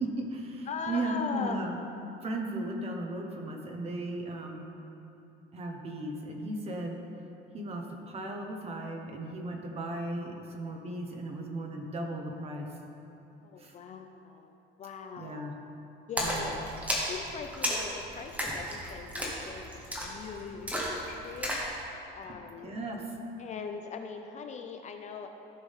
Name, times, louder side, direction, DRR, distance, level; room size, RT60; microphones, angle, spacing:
voice 1, 0.0-1.8 2.2-4.6 5.5-7.0 7.5-12.7 13.6-13.7 15.2-15.5 16.2-16.5 22.6-23.0, right 1 dB, 30° right, 1 dB, 1.1 m, -36 dB
voice 2, 0.7-1.7 13.4-14.5 14.8-15.4 16.1-16.7 17.1-21.6 22.1-22.7 23.4-25.3, left 5 dB, 35° left, 5 dB, 0.5 m, -40 dB
Splash splatter, 16.2-21.7, equal, 5° right, 1.4 m, -34 dB
15.0 x 6.1 x 3.6 m, 2.8 s
cardioid pair, 155°, 21 cm